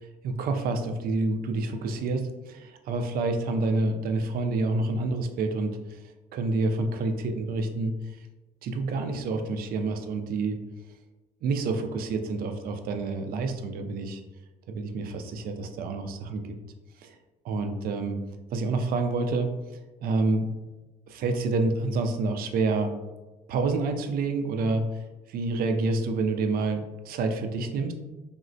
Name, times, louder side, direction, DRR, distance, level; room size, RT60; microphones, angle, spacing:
voice 1, 0.2-6.0 6.3-7.9 8.6-10.6 11.4-14.2 14.7-16.5 17.0-17.2 17.4-18.2 18.5-19.5 20.0-20.5 21.1-22.9 23.5-24.8 25.3-27.9, right 3 dB, 60° right, 6 dB, 0.4 m, -28 dB
3.5 x 2.0 x 2.5 m, 1.1 s
cardioid pair, 110°, 17 cm